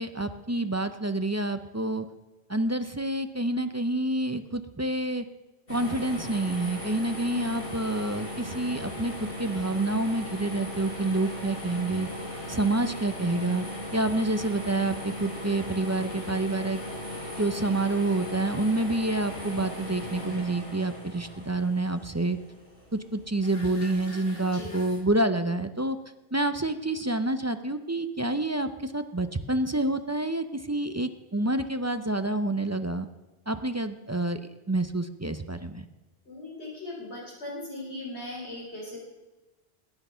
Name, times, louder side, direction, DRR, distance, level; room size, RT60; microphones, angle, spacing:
voice 1, 0.0-2.0 2.5-5.2 5.7-12.1 12.5-13.6 13.9-16.8 17.4-22.4 23.1-26.0 26.3-33.1 33.5-34.4 34.7-35.8, right 2 dB, 20° right, 9 dB, 0.6 m, -28 dB
sound 1, 5.7-25.0, left 1 dB, 60° left, 5.2 m, -38 dB
voice 2, 36.3-39.0, left 1 dB, 75° left, -3 dB, 4.1 m, -38 dB
20.5 x 9.3 x 5.6 m, 1.2 s
omnidirectional pair, 1.1 m